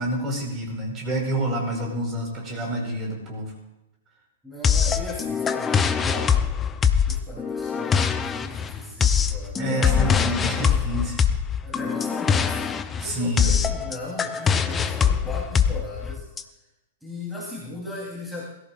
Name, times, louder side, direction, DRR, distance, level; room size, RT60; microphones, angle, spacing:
voice 1, 0.0-3.5 9.6-11.2 13.0-13.5, right 1 dB, 25° right, 0 dB, 4.7 m, -28 dB
voice 2, 4.4-6.2 7.0-10.2 11.6-16.2 17.0-18.5, left 1 dB, ahead, -6 dB, 3.5 m, -37 dB
sound 1, 4.6-16.4, left 7 dB, 20° left, 0.7 m, -23 dB
21.0 x 14.5 x 2.5 m, 0.93 s
figure-of-eight pair, 105°, 0 cm